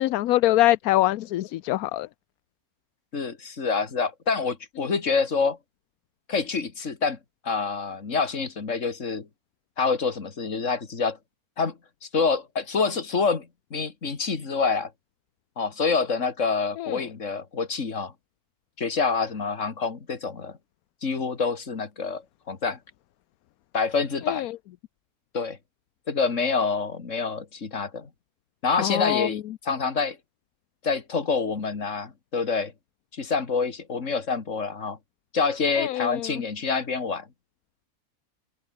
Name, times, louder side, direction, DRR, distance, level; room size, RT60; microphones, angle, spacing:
voice 1, 0.0-2.1 16.8-17.0 24.3-24.5 28.8-29.3 35.8-36.2, left 15 dB, 75° left, 1.1 m, -23 dB
voice 2, 3.1-5.6 6.3-7.2 7.4-9.3 9.8-11.2 11.6-14.9 15.6-18.1 18.8-20.6 21.0-22.2 22.5-22.8 23.7-24.5 25.3-25.6 26.1-28.1 28.6-30.2 30.8-32.7 33.1-35.0 35.3-37.3, left 4 dB, 55° left, 2.5 m, -27 dB
omnidirectional pair, 1.6 m